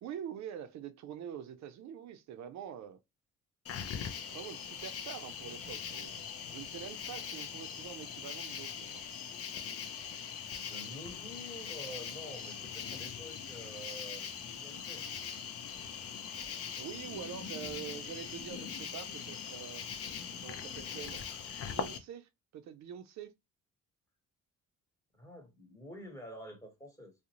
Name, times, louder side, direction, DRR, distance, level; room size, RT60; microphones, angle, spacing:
voice 1, 0.0-3.0 4.3-6.1 6.5-9.0 16.8-19.9 20.4-21.2 21.6-23.3, right 9 dB, 65° right, 0.4 m, -45 dB
Cricket, 3.6-22.0, left 7 dB, 50° left, 0.5 m, -41 dB
voice 2, 10.5-15.1 25.2-27.1, equal, 10° left, 1.1 m, -48 dB
2.4 x 2.0 x 2.8 m
cardioid pair, 90°, 30 cm